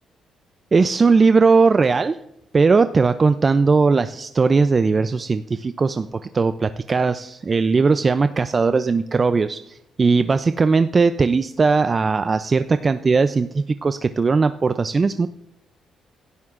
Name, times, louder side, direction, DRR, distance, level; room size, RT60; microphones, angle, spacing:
voice 1, 0.7-2.2 2.5-15.3, right 4 dB, 35° right, 11 dB, 0.4 m, -18 dB
16.5 x 12.5 x 2.5 m, 0.82 s
cardioid pair, 90°, 0 cm